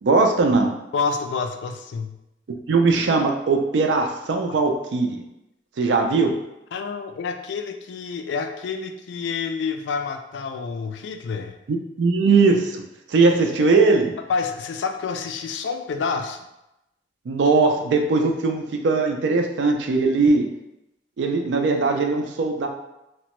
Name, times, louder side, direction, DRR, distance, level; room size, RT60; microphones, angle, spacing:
voice 1, 0.0-0.7 2.7-5.2 5.8-6.3 11.7-12.8 13.1-14.1 17.3-20.5 21.2-22.7, right 3 dB, 85° right, 4 dB, 0.4 m, -20 dB
voice 2, 0.9-2.2 4.5-4.6 6.0-6.1 6.7-11.6 14.3-16.5, left 5 dB, 85° left, 7 dB, 0.3 m, -28 dB
2.9 x 2.1 x 2.9 m, 0.91 s
head